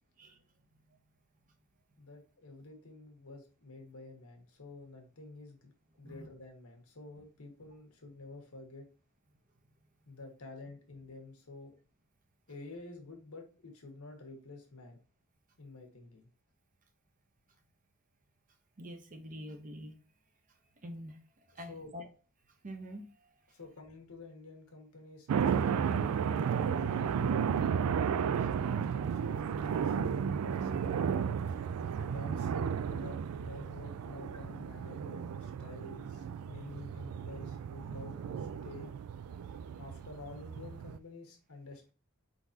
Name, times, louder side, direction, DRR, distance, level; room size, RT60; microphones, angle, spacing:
voice 1, 2.0-5.7 6.0-8.8 10.1-11.7 12.5-15.0 15.6-16.3 21.7-21.9 23.5-31.1 32.0-38.9 39.8-41.9, left 3 dB, 80° left, 3 dB, 1.4 m, -49 dB
voice 2, 18.8-19.9 20.8-21.2 21.6-22.1 22.6-23.0, equal, 40° right, 5 dB, 0.7 m, -45 dB
sound 1, 25.3-41.0, right 7 dB, 80° right, 0.3 m, -33 dB
4.6 x 3.9 x 2.7 m, 0.36 s
head